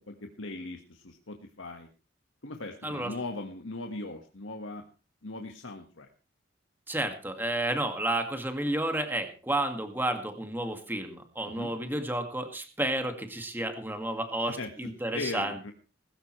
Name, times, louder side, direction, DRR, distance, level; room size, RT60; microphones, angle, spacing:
voice 1, 0.0-1.9 2.4-4.8 5.2-6.1 11.5-11.7 14.5-15.7, left 2 dB, 90° left, 4 dB, 1.6 m, -39 dB
voice 2, 6.9-15.7, right 1 dB, 10° right, 6 dB, 2.0 m, -31 dB
20.0 x 14.0 x 3.2 m, 0.31 s
head